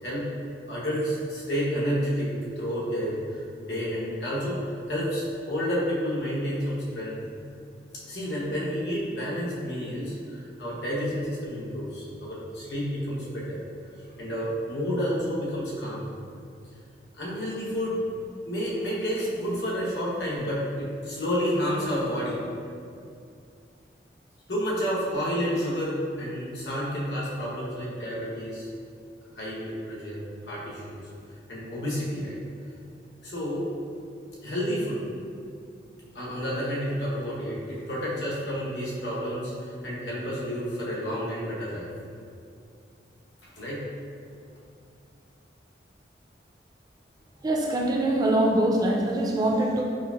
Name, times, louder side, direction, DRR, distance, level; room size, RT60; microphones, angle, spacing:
voice 1, 0.7-2.3 2.6-7.2 8.1-13.6 14.2-16.1 17.2-18.0 18.5-22.4 24.5-28.7 29.4-30.2 30.5-31.0 31.5-32.4 33.2-33.7 34.4-35.0 36.1-41.9 43.4-43.8, equal, 80° left, -6 dB, 0.9 m, -30 dB
voice 2, 47.4-49.8, right 1 dB, 20° right, -2 dB, 0.3 m, -23 dB
4.9 x 2.4 x 2.3 m, 2.4 s
head